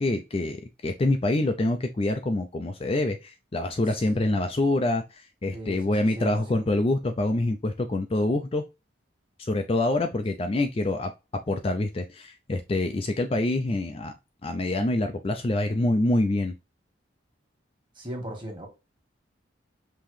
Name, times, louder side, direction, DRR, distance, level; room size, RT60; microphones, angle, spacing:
voice 1, 0.0-8.6 9.4-11.1 11.5-14.1 14.4-16.6, left 2 dB, 30° left, 0.4 m, -26 dB
voice 2, 5.5-6.6 17.9-18.7, right 1 dB, 25° right, 1.6 m, -37 dB
5.5 x 2.9 x 3.2 m
head